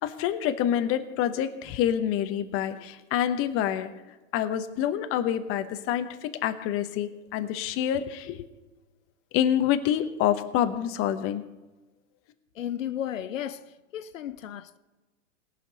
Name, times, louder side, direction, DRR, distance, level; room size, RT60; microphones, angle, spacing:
voice 1, 0.0-8.5 9.3-11.5, left 10 dB, 35° left, 0.9 m, -27 dB
voice 2, 12.5-14.8, left 10 dB, 85° left, 0.7 m, -34 dB
18.0 x 6.0 x 5.2 m
hypercardioid pair, 110°, 38 cm